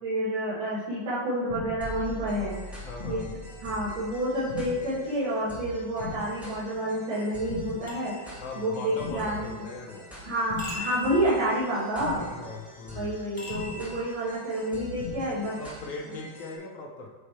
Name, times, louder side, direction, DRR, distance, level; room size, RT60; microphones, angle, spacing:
voice 1, 0.0-2.5 3.0-3.2 3.6-8.1 8.6-9.6 10.3-12.2 12.9-15.6, right 1 dB, 75° right, -11 dB, 2.2 m, -29 dB
sound 1, 1.5-2.0 3.0-3.5 4.5-5.0 6.0-6.5 7.5-8.0 9.0-9.5 10.5-11.0 12.0-12.5 13.5-14.0 15.0-15.5, left 4 dB, 55° left, 0.9 m, -39 dB
sound 2, 1.8-16.6, equal, ahead, 1.1 m, -44 dB
voice 2, 2.8-3.3 8.4-10.1 12.2-13.2 15.6-17.1, left 3 dB, 85° left, 0 dB, 0.7 m, -39 dB
sound 3, 7.9-9.1 10.6-12.0 13.4-14.7, left 2 dB, 25° left, 0.8 m, -41 dB
8.0 x 3.1 x 4.1 m, 1.3 s
omnidirectional pair, 2.1 m